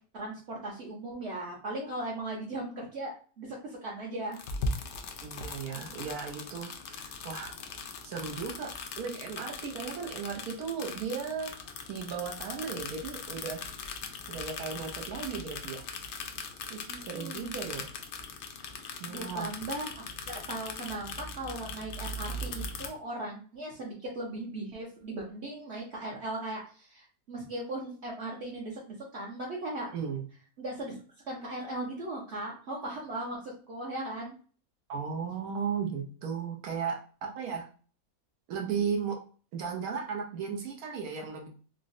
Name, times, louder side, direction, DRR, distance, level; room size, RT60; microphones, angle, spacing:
voice 1, 0.1-4.4 16.9-17.6 19.1-29.9 30.6-31.0 31.3-34.3, right 1 dB, 60° right, -4 dB, 0.8 m, -38 dB
sound 1, 4.3-22.9, left 3 dB, 65° left, 0.7 m, -40 dB
voice 2, 5.2-7.5 8.0-11.5 11.9-13.7 14.3-15.9 16.7-17.8 19.0-19.5 29.9-30.2 34.9-37.7 38.5-39.2 39.5-41.5, right 6 dB, 85° right, 1 dB, 1.2 m, -36 dB
3.8 x 2.0 x 2.5 m, 0.41 s
omnidirectional pair, 1.5 m